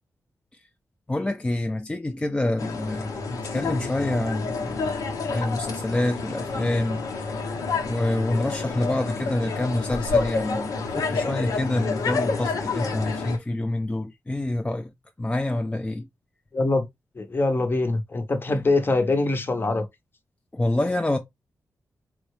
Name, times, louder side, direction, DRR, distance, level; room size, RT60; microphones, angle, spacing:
voice 1, 1.1-4.9 5.3-7.4 7.8-14.9 15.2-16.1 20.5-21.2, left 1 dB, 15° left, 0.4 m, -27 dB
sound 1, 2.6-13.4, left 4 dB, 85° left, 0.8 m, -29 dB
voice 2, 16.5-16.9 17.2-19.9, left 2 dB, 40° left, 0.8 m, -23 dB
3.8 x 2.2 x 3.1 m
cardioid pair, 60°, 6 cm